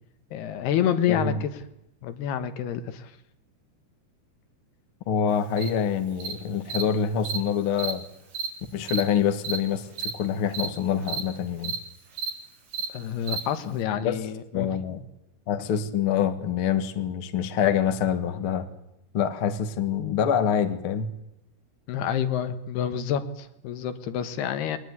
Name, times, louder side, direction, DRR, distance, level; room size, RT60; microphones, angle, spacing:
voice 1, 0.3-1.5 2.0-3.1 12.9-14.7 21.9-24.8, left 9 dB, 70° left, 11 dB, 3.3 m, -28 dB
voice 2, 1.1-1.4 5.1-8.0 8.7-11.7 14.0-14.2 14.5-15.0 15.5-18.7 19.1-21.1, left 8 dB, 55° left, 9 dB, 1.5 m, -26 dB
Cricket, 5.6-5.7 6.2-6.3 6.7-6.8 7.3-7.4 7.7-7.9 8.3-8.5 8.9-9.0 9.4-9.6 9.9-10.1 10.5-10.7 11.0-11.2 11.6-11.8 12.1-12.3 12.7-12.9 13.3-13.4, right 5 dB, 80° right, 6.3 m, -30 dB
22.5 x 19.0 x 9.6 m, 0.85 s
omnidirectional pair, 5.0 m